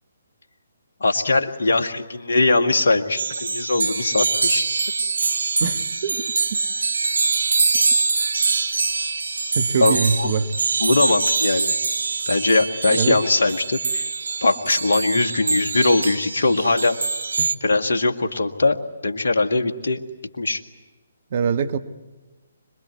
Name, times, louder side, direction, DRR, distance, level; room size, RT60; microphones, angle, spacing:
voice 1, 1.0-4.7 9.8-10.3 10.8-11.8 12.3-14.1 14.4-17.0 17.6-20.0 20.4-20.6, left 3 dB, 65° left, 4 dB, 1.9 m, -21 dB
sound 1, 3.2-17.6, right 4 dB, 70° right, 1.2 m, -24 dB
voice 2, 5.6-6.2 6.5-6.6 9.5-10.5 12.9-13.2 17.4-17.5 21.3-21.8, right 5 dB, 45° right, 10 dB, 1.6 m, -23 dB
26.0 x 21.5 x 9.6 m, 1.2 s
figure-of-eight pair, 135°, 0 cm